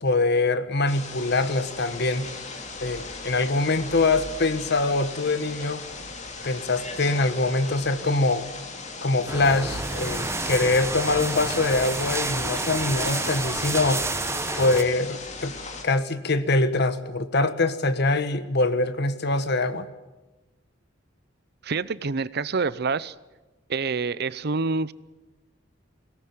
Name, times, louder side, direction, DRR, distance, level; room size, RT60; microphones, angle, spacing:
voice 1, 0.0-2.4 2.8-5.9 6.4-8.4 9.0-14.1 14.5-15.6 15.8-19.9, left 2 dB, 60° left, 12 dB, 1.4 m, -24 dB
sound 1, 0.9-15.8, left 3 dB, 40° left, 2.9 m, -38 dB
sound 2, 9.3-14.8, right 3 dB, 15° right, 1.1 m, -29 dB
voice 2, 21.6-23.1 23.7-24.9, right 4 dB, 55° right, 18 dB, 0.7 m, -27 dB
22.0 x 18.0 x 9.4 m, 1.1 s
head